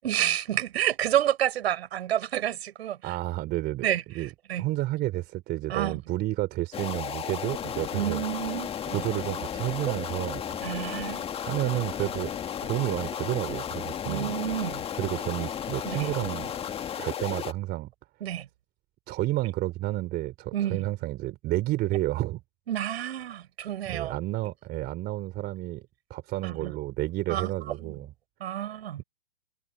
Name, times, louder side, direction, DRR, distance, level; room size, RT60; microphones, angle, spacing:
voice 1, 0.0-3.1 3.8-4.7 5.7-6.0 7.9-9.0 10.6-11.2 14.0-14.8 15.8-16.1 18.2-18.5 20.5-20.9 22.7-24.1 26.4-26.7 27.3-27.5 27.8-27.9 28.4-29.0, right 11 dB, 55° right, 8.0 m, -29 dB
voice 2, 3.0-3.9 4.2-4.3 4.6-8.2 8.9-10.6 11.3-12.3 12.6-14.3 14.9-16.5 17.0-17.9 19.1-22.4 23.9-25.8 26.1-28.1, right 17 dB, 25° right, 3.6 m, -30 dB
sound 1, 6.7-17.5, left 8 dB, 15° left, 2.1 m, -34 dB
hypercardioid pair, 125°, 37 cm